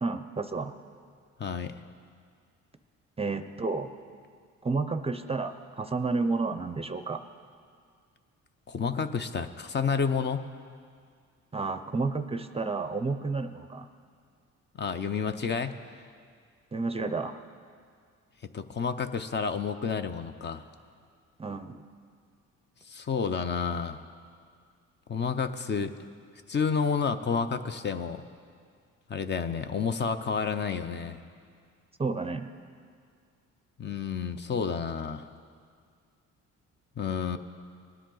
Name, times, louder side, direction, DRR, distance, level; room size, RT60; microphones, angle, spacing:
voice 1, 0.0-0.7 3.2-3.9 4.6-7.2 11.5-13.9 16.7-17.4 21.4-21.8 32.0-32.5, right 3 dB, 20° right, 9 dB, 0.5 m, -31 dB
voice 2, 1.4-1.8 8.7-10.5 14.8-16.0 18.5-20.6 22.8-24.1 25.1-25.9 26.5-28.2 29.1-31.2 33.8-35.3 37.0-37.4, left 6 dB, 35° left, 10 dB, 0.6 m, -30 dB
19.5 x 10.0 x 3.9 m, 2.1 s
cardioid pair, 90°, 30 cm